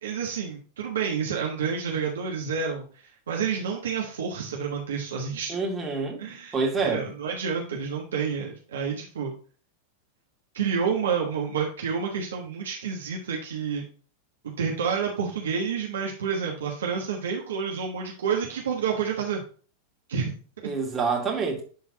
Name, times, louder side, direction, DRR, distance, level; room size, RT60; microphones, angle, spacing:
voice 1, 0.0-2.8 3.3-5.6 6.2-6.6 6.8-9.3 10.5-13.9 14.4-19.4 20.1-20.3 20.6-20.7, right 6 dB, 65° right, 1.3 m, -29 dB
voice 2, 5.5-6.2 6.5-7.0 20.6-21.6, right 4 dB, 15° right, 2.3 m, -27 dB
11.5 x 3.9 x 2.8 m
figure-of-eight pair, 90°, 0 cm